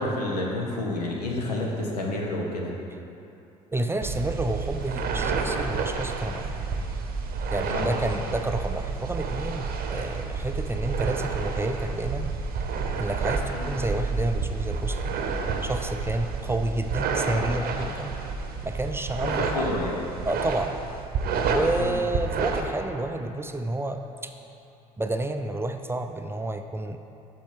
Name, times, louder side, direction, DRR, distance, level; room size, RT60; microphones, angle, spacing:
voice 1, 0.0-2.7 7.7-7.9 13.5-13.7 19.3-20.0 21.8-21.9, left 2 dB, 85° left, -1 dB, 1.0 m, -29 dB
voice 2, 3.7-6.5 7.5-12.3 13.0-15.1 15.6-18.2 18.6-19.7 20.2-20.8 21.5-24.3 25.0-27.0, right 2 dB, 10° right, 6 dB, 0.4 m, -30 dB
sound 1, 4.0-22.6, right 4 dB, 50° right, 0.8 m, -30 dB
7.0 x 5.5 x 4.6 m, 2.8 s
hypercardioid pair, 60°, 20 cm